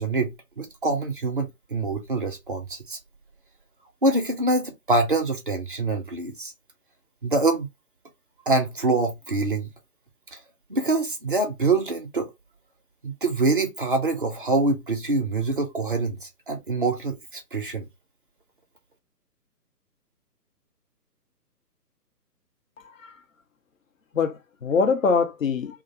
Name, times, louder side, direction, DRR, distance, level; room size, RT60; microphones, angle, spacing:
voice 1, 0.0-3.0 4.0-6.5 7.2-7.7 8.5-9.7 10.3-10.4 10.7-12.3 13.0-17.9, right 2 dB, 35° right, 0.4 m, -25 dB
voice 2, 22.8-23.2 24.1-25.8, left 5 dB, 55° left, 0.6 m, -24 dB
2.4 x 2.0 x 2.8 m
figure-of-eight pair, 140°, 48 cm